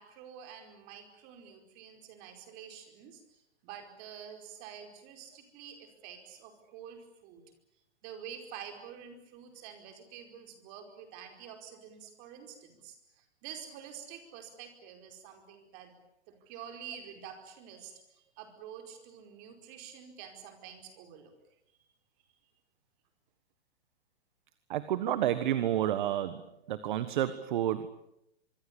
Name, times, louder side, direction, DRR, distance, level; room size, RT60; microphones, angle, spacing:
voice 1, 0.0-7.4 8.0-16.0 16.3-18.0 18.4-21.3, right 8 dB, 30° right, 5 dB, 4.9 m, -48 dB
voice 2, 24.7-27.9, right 11 dB, 45° right, 13 dB, 1.5 m, -30 dB
25.5 x 23.5 x 8.6 m, 0.82 s
hypercardioid pair, 155°, 33 cm